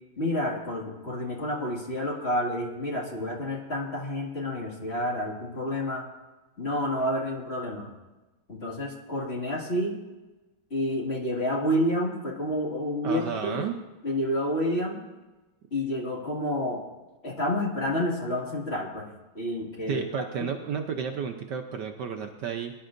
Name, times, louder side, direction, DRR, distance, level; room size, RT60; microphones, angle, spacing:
voice 1, 0.2-6.0 6.6-7.9 8.5-10.0 10.7-13.7 14.0-15.0 15.7-16.8 17.2-20.0, left 1 dB, 30° left, -2 dB, 2.2 m, -29 dB
voice 2, 13.0-13.7 19.9-22.7, right 7 dB, 65° right, 4 dB, 1.2 m, -32 dB
22.5 x 11.5 x 2.6 m, 1.1 s
omnidirectional pair, 2.2 m